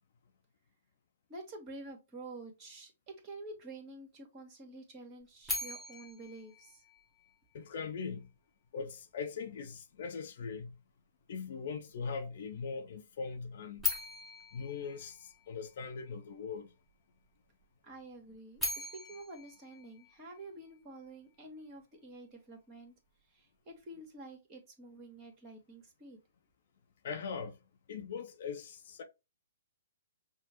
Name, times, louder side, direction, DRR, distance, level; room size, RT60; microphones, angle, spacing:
voice 1, 1.3-6.8 17.8-22.9 23.3-26.2, right 2 dB, 25° right, 1.5 m, -49 dB
sound 1, 5.4-7.6 13.8-16.0 18.3-20.7, left 3 dB, ahead, 1.2 m, -40 dB
voice 2, 7.5-8.3 8.7-10.8 11.3-13.9 14.5-16.7 27.0-27.6 27.9-29.0, left 5 dB, 55° left, 0.7 m, -40 dB
5.9 x 2.1 x 3.0 m
figure-of-eight pair, 125°, 0 cm